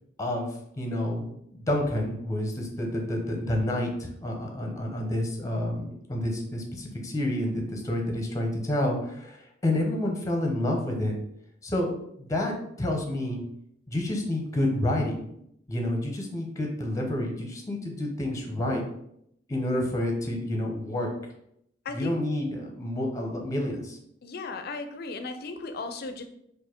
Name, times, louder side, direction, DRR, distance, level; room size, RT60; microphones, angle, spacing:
voice 1, 0.8-11.2 11.6-11.9 12.2-13.4 13.9-15.3 15.7-18.8 19.5-21.1 21.9-24.0, left 1 dB, 15° left, 1 dB, 0.9 m, -29 dB
voice 2, 24.2-26.2, left 3 dB, 55° left, 7 dB, 0.5 m, -36 dB
4.4 x 2.6 x 4.5 m, 0.74 s
head